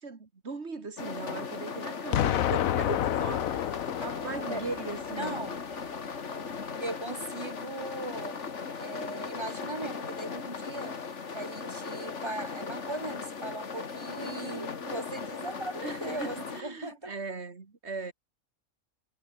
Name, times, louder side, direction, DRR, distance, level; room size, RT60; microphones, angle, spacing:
voice 1, 0.0-5.4 14.2-14.8 15.8-18.1, right 4 dB, 50° right, 2.4 m, -39 dB
sound 1, 1.0-16.6, left 5 dB, 60° left, 2.1 m, -38 dB
Explosion, 2.1-5.1, left 11 dB, 80° left, 1.2 m, -29 dB
voice 2, 5.2-5.6 6.8-8.4 8.8-17.1, right 2 dB, 20° right, 2.5 m, -38 dB
omnidirectional pair, 1.4 m